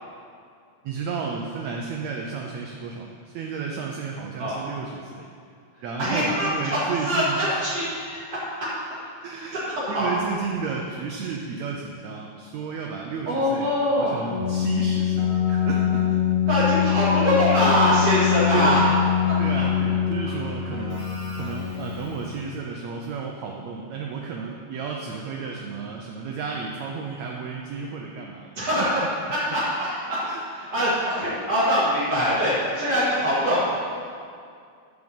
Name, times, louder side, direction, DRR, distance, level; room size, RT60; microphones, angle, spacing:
voice 1, 0.8-5.3 5.8-7.6 9.2-13.7 14.0-16.2 17.0-17.2 18.5-18.8 19.4-28.9 30.2-30.4 30.8-30.9, right 5 dB, 70° right, 0 dB, 1.8 m, -32 dB
voice 2, 5.8-8.7 9.3-10.1 13.3-14.2 16.5-18.9 19.3-19.4 28.6-30.2 30.5-33.7, equal, 55° right, -10 dB, 2.9 m, -23 dB
Keyboard (musical), 14.3-22.4, left 9 dB, 35° left, 2.1 m, -24 dB
13.0 x 5.0 x 7.1 m, 2.3 s
omnidirectional pair, 3.7 m